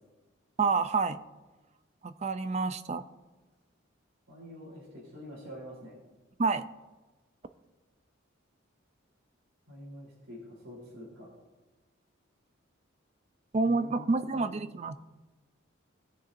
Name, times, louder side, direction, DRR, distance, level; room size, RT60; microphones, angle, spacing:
voice 1, 0.6-1.2 2.0-3.0 6.4-6.7 13.5-15.0, right 4 dB, 35° right, 12 dB, 0.4 m, -28 dB
voice 2, 4.3-6.0 9.7-11.3 13.6-14.6, left 1 dB, 85° right, -3 dB, 3.5 m, -46 dB
18.0 x 6.9 x 2.6 m, 1.2 s
head